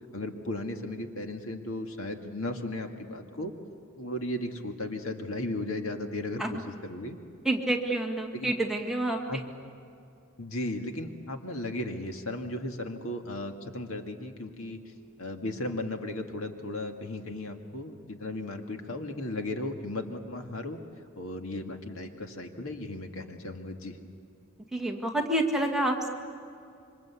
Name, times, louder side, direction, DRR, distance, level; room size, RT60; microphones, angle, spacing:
voice 1, 0.1-3.5 4.0-7.2 8.3-8.5 9.3-9.4 10.4-14.8 15.2-20.8 21.2-24.0, left 1 dB, 70° left, 4 dB, 2.1 m, -35 dB
voice 2, 7.4-9.2 24.7-26.1, right 1 dB, ahead, 0 dB, 1.8 m, -28 dB
27.0 x 24.5 x 8.4 m, 2.5 s
head